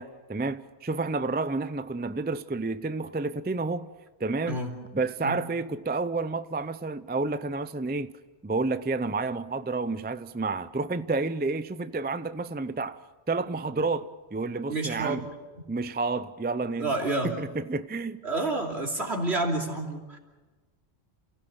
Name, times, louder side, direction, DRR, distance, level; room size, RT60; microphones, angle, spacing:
voice 1, 0.0-3.9 4.2-4.6 4.9-8.1 8.4-13.0 13.3-15.2 15.7-16.9 17.2-18.2, right 3 dB, 15° right, 0.4 m, -30 dB
voice 2, 14.7-15.3 16.8-17.3 18.2-20.2, right 2 dB, 75° right, 3.4 m, -29 dB
28.5 x 16.5 x 7.1 m
omnidirectional pair, 1.1 m